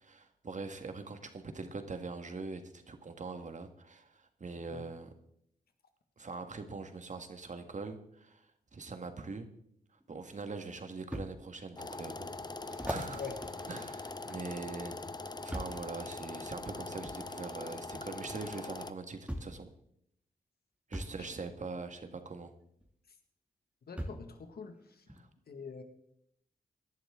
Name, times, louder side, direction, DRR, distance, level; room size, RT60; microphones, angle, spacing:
voice 1, 0.0-5.1 6.2-8.5 8.7-9.5 10.1-12.3 12.6-13.2 13.7-15.0 15.4-19.7 20.9-22.5 25.1-25.3, right 4 dB, 50° right, 7 dB, 1.7 m, -43 dB
sound 1, 10.0-10.1 11.1-11.3 11.9-12.0 12.7-14.6 15.5-15.9 17.0-17.2 18.5-18.6 19.3-19.6 20.9-21.2 22.8-22.9 24.0-24.3 25.1-25.2, equal, 5° right, 2.3 m, -41 dB
sound 2, 11.7-18.9, left 3 dB, 25° left, 0.7 m, -42 dB
voice 2, 23.9-24.8 25.5-25.8, left 5 dB, 75° left, 6 dB, 1.8 m, -44 dB
17.5 x 11.0 x 3.7 m, 0.74 s
cardioid pair, 65°, 16 cm